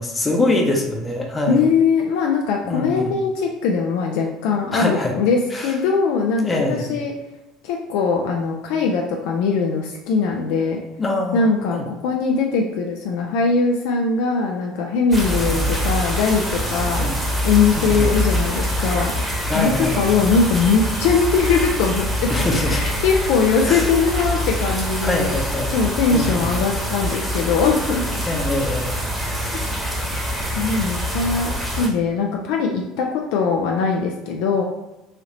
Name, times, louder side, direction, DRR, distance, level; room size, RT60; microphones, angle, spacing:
voice 1, 0.0-1.6 2.6-3.2 4.7-5.1 5.5-5.7 6.4-7.0 11.0-11.5 11.7-11.8 15.4-15.6 16.9-17.1 17.8-18.1 19.5-20.0 22.3-22.8 23.7-23.9 25.0-25.7 26.1-26.5 28.3-28.9 29.2-29.6, left 2 dB, 20° left, 2 dB, 0.7 m, -24 dB
voice 2, 1.5-7.1 7.6-10.8 11.3-17.0 17.4-19.1 19.5-25.4 25.7-28.0 30.6-34.6, left 5 dB, 60° left, 1 dB, 0.3 m, -21 dB
sound 1, 15.1-31.9, equal, 5° right, 1.0 m, -24 dB
3.3 x 2.7 x 2.7 m, 1.0 s
figure-of-eight pair, 65°, 0 cm